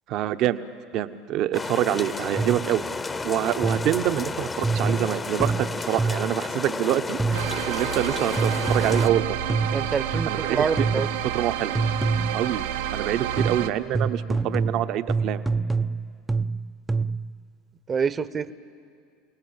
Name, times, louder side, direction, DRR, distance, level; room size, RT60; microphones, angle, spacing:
voice 1, 0.1-0.7 0.9-2.8 3.2-9.4 10.3-11.0 11.3-11.7 12.3-12.6 12.9-15.4, right 12 dB, 60° right, 11 dB, 0.9 m, -26 dB
sound 1, 1.5-9.1, left 3 dB, 25° left, 0.9 m, -32 dB
sound 2, 2.4-2.8 3.6-4.1 4.6-6.4 7.2-7.7 8.4-10.4 10.8-11.3 11.7-12.5 13.4-17.4, right 4 dB, 10° right, 0.5 m, -26 dB
sound 3, 7.3-13.7, right 10 dB, 85° right, 0.9 m, -30 dB
voice 2, 9.7-11.1 17.9-18.5, right 6 dB, 30° right, 16 dB, 0.8 m, -26 dB
28.5 x 18.5 x 8.8 m, 2.3 s
hypercardioid pair, 85°, 0 cm